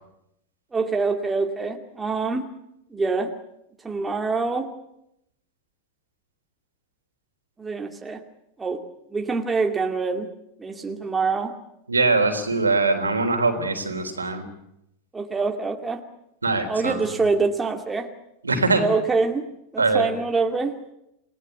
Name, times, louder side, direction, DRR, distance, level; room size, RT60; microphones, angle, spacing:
voice 1, 0.7-2.4 2.9-3.3 3.8-4.7 7.6-8.2 8.6-8.8 9.1-10.3 10.6-11.5 15.1-16.0 16.7-18.1 18.8-19.4 19.7-20.7, right 4 dB, 15° right, 4 dB, 2.2 m, -25 dB
voice 2, 11.9-14.5 16.4-17.3 18.4-18.8 19.8-20.1, right 3 dB, 80° right, 5 dB, 3.7 m, -22 dB
28.5 x 18.5 x 8.3 m, 0.82 s
figure-of-eight pair, 90°, 0 cm